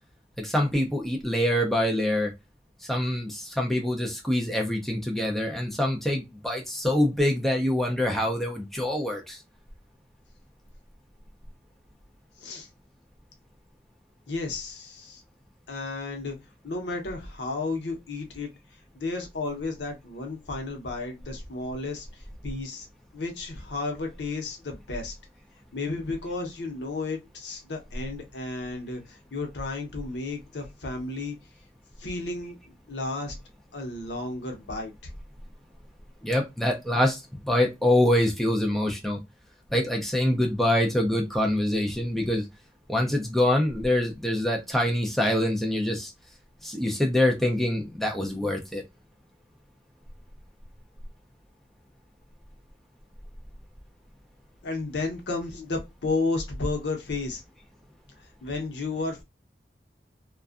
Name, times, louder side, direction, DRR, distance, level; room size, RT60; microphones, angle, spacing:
voice 1, 0.4-2.3 2.8-9.4 36.2-39.2 39.7-42.4 42.9-46.1 46.6-48.8, left 1 dB, ahead, 0.5 m, -25 dB
voice 2, 12.4-12.7 14.3-15.2 15.7-16.4 16.6-18.5 18.9-22.9 23.1-25.1 25.7-31.4 32.0-33.4 33.7-34.9 54.6-57.4 58.2-59.2, left 3 dB, 90° left, 0.8 m, -33 dB
2.5 x 2.3 x 2.3 m
head